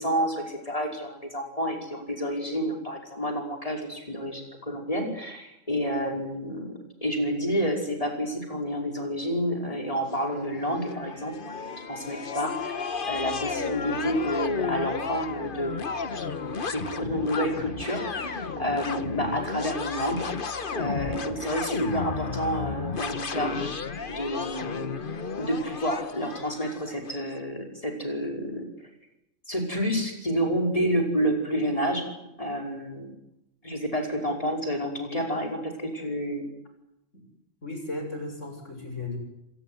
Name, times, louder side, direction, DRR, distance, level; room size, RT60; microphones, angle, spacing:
voice 1, 0.0-11.6 11.9-12.8 13.1-15.7 16.7-20.2 20.5-23.5 24.1-25.0 25.4-28.7 29.5-32.1 32.4-33.1 33.6-36.5, equal, 25° left, 2 dB, 5.6 m, -29 dB
sound 1, 10.1-27.2, left 5 dB, 40° left, 1.4 m, -33 dB
voice 2, 37.6-39.2, left 2 dB, 65° left, 4 dB, 7.2 m, -35 dB
26.0 x 19.0 x 9.7 m, 0.86 s
omnidirectional pair, 1.4 m